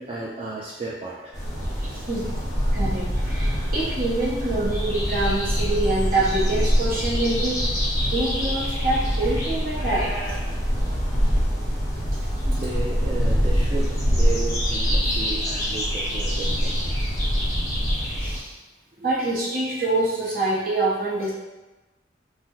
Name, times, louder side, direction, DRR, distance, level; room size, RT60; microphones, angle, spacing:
voice 1, 0.0-1.4 10.5-10.6 12.4-16.9 19.0-19.1, right 3 dB, 30° right, -6 dB, 0.3 m, -34 dB
sound 1, 1.3-18.4, equal, 15° left, 0.9 m, -24 dB
voice 2, 1.8-2.2 2.7-7.6 8.1-10.1 18.2-18.5 19.0-21.3, right 2 dB, 50° right, -6 dB, 0.8 m, -25 dB
2.8 x 2.1 x 3.6 m, 1.1 s
head